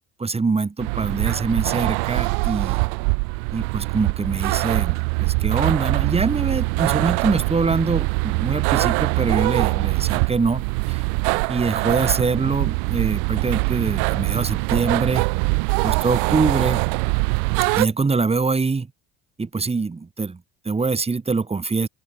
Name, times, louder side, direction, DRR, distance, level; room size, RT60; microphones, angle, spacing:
voice 1, 0.2-2.8 3.5-11.0 11.5-15.3 15.8-16.8 17.8-18.9 19.4-21.9, right 4 dB, 15° right, 1.9 m, -24 dB
sound 1, 0.8-17.9, right 40 dB or more, 85° right, 0.5 m, -23 dB
open air
supercardioid pair, 105°, 36 cm